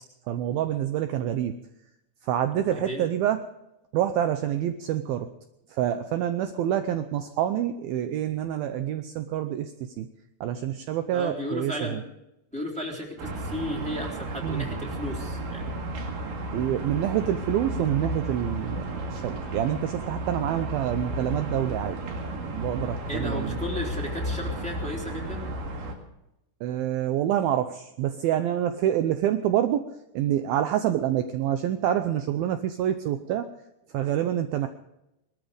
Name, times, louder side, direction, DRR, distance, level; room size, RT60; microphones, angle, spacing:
voice 1, 0.3-1.6 2.2-3.4 3.9-5.3 5.7-10.1 10.4-12.0 14.4-14.7 16.5-22.0 22.3-23.6 26.6-29.9 30.1-33.5 33.9-34.7, right 11 dB, 75° right, 9 dB, 2.3 m, -27 dB
voice 2, 2.6-3.0 11.1-12.0 12.5-15.8 23.1-25.4, left 1 dB, ahead, -1 dB, 2.9 m, -34 dB
sound 1, 13.2-26.0, right 1 dB, 60° right, 3.6 m, -33 dB
22.0 x 13.0 x 5.1 m, 0.87 s
omnidirectional pair, 4.7 m